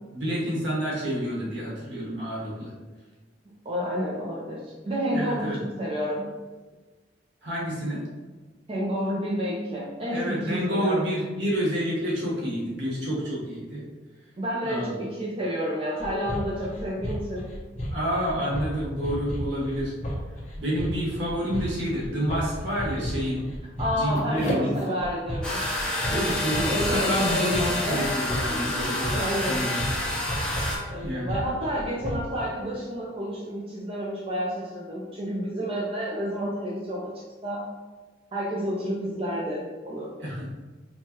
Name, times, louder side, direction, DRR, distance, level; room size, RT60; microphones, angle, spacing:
voice 1, 0.1-2.7 5.1-5.6 7.4-8.0 10.1-13.8 14.6-14.9 17.9-19.9 20.6-24.7 26.0-29.2 29.5-29.8 31.0-31.3 40.2-40.5, equal, 70° right, -5 dB, 1.3 m, -28 dB
voice 2, 3.6-6.3 8.7-11.1 14.4-17.5 23.8-25.6 26.1-28.0 28.5-29.6 30.9-37.1 37.4-37.6 38.3-40.1, equal, 30° right, -4 dB, 0.5 m, -30 dB
sound 1, 16.0-32.4, equal, 40° left, 0.7 m, -33 dB
sound 2, 25.4-30.8, left 1 dB, 5° left, 0.8 m, -28 dB
4.5 x 2.3 x 2.9 m, 1.3 s
head